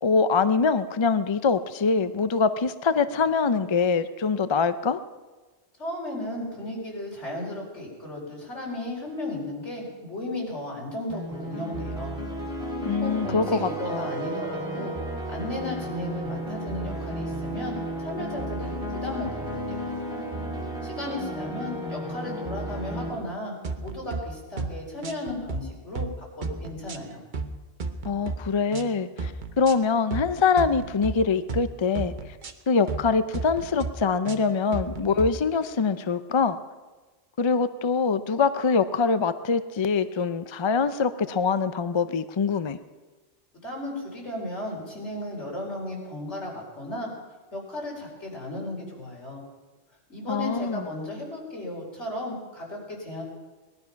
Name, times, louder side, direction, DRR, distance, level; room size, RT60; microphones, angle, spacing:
voice 1, 0.0-5.0 12.9-14.1 28.0-32.4 32.7-36.6 37.4-42.8 50.3-50.8, left 5 dB, 45° left, 12 dB, 0.4 m, -24 dB
voice 2, 5.8-12.2 13.0-15.0 15.3-20.0 20.8-27.2 43.6-47.1 47.5-49.4 50.1-53.2, left 1 dB, 85° left, -2 dB, 4.6 m, -35 dB
sound 1, 11.1-23.1, right 1 dB, 30° right, 4.1 m, -33 dB
sound 2, 23.6-24.2 24.6-24.8 25.0-25.6 26.0-26.1 26.4-27.5 27.8-28.4 28.7-28.9 29.2-29.7 30.1-30.3 30.6-31.1 31.5-31.7 32.0-32.5 32.9-33.1 33.3-33.9 34.3-35.3, right 4 dB, 45° right, 1.0 m, -33 dB
19.5 x 12.0 x 5.8 m, 1.3 s
omnidirectional pair, 1.2 m